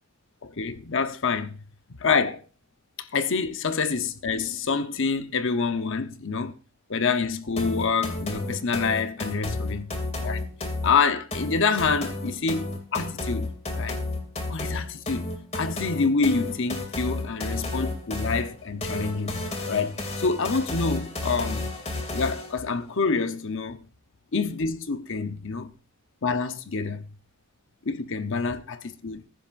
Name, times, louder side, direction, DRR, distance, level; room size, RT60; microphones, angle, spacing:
voice 1, 0.4-1.6 2.0-2.4 3.0-6.5 6.9-9.9 10.2-10.4 10.8-14.0 14.5-21.6 22.1-23.8 24.3-25.7 26.2-27.1 27.8-29.2, left 4 dB, 65° left, 0.9 m, -27 dB
sound 1, 7.6-22.6, left 2 dB, 30° left, 2.5 m, -32 dB
20.5 x 10.5 x 2.6 m
head